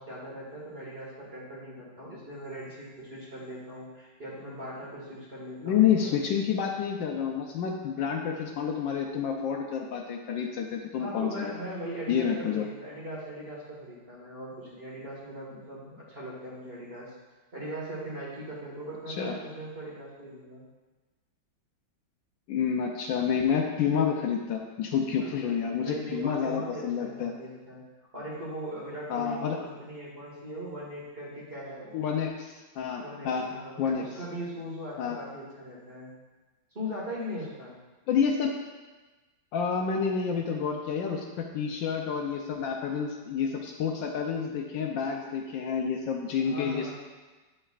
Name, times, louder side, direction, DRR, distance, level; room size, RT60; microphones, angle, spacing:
voice 1, 0.0-6.4 11.0-17.1 17.5-20.6 25.4-27.8 28.1-32.0 33.0-36.1 36.7-37.8 46.4-46.9, equal, 30° right, -6 dB, 1.9 m, -40 dB
voice 2, 5.6-11.5 12.1-12.7 19.1-19.4 22.5-27.3 29.1-29.6 31.9-33.5 33.8-34.0 35.0-35.2 38.1-38.5 39.5-46.9, left 7 dB, 75° left, 1 dB, 1.3 m, -29 dB
10.0 x 5.4 x 2.4 m, 1.2 s
omnidirectional pair, 2.1 m